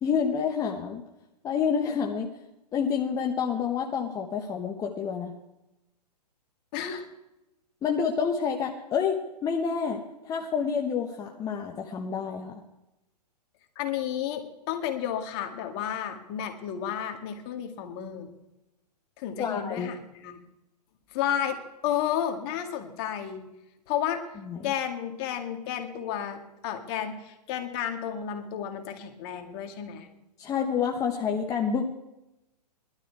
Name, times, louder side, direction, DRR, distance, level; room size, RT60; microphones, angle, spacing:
voice 1, 0.0-1.0 1.4-2.3 2.7-5.3 7.8-12.6 19.4-19.9 24.5-24.7 30.4-31.9, left 6 dB, 15° left, 2 dB, 1.0 m, -28 dB
voice 2, 6.7-7.1 13.8-18.3 19.2-20.4 21.1-23.4 23.9-24.2 24.6-30.1, left 9 dB, 35° left, 5 dB, 2.1 m, -32 dB
20.5 x 12.5 x 4.7 m, 0.95 s
hypercardioid pair, 140°, 21 cm